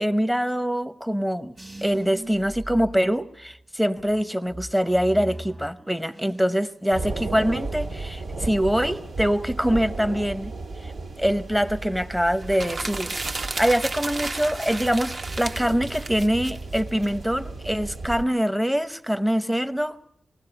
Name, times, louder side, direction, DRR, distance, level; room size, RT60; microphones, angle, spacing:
voice 1, 0.0-1.5 1.8-10.5 10.8-10.9 11.2-20.0, equal, 5° right, 0.9 m, -24 dB
sound 1, 1.6-3.6 4.1-6.6 6.9-7.5, right 2 dB, 25° right, 1.5 m, -40 dB
sound 2, 6.9-18.2, right 3 dB, 75° right, 2.1 m, -35 dB
sound 3, 12.4-17.1, right 3 dB, 45° right, 1.0 m, -33 dB
21.5 x 16.5 x 9.9 m
wide cardioid pair, 115°, 0 cm